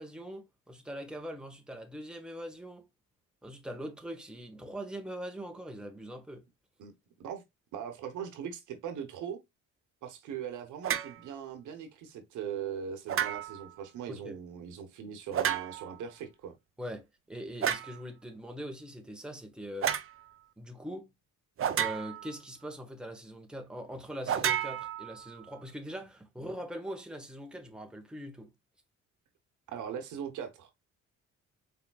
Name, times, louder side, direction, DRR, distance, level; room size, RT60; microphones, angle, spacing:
voice 1, 0.0-2.8 3.4-6.4 14.1-14.4 16.8-19.9 20.6-21.1 21.8-28.5, equal, 5° right, 1.0 m, -42 dB
voice 2, 6.8-7.4 7.7-9.4 10.0-16.5 29.7-30.7, right 8 dB, 80° right, 1.1 m, -40 dB
sound 1, 10.8-11.2 13.1-13.7 15.3-16.0 17.6-18.0 19.8-20.1 21.6-22.3 24.3-25.4, right 9 dB, 45° right, 0.6 m, -31 dB
4.6 x 3.5 x 2.3 m
cardioid pair, 90°, 30 cm